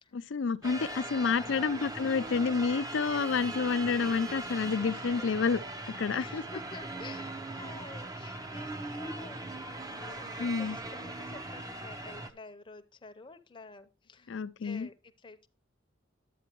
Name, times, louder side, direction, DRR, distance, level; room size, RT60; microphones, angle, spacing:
voice 1, 0.1-5.6 5.9-6.4 10.4-10.8 14.3-14.9, left 5 dB, 70° left, 0.5 m, -29 dB
sound 1, 0.6-12.3, right 2 dB, 20° right, 0.6 m, -40 dB
voice 2, 1.1-1.8 4.9-5.4 6.1-15.5, left 3 dB, 25° left, 0.7 m, -50 dB
11.0 x 8.5 x 2.9 m
head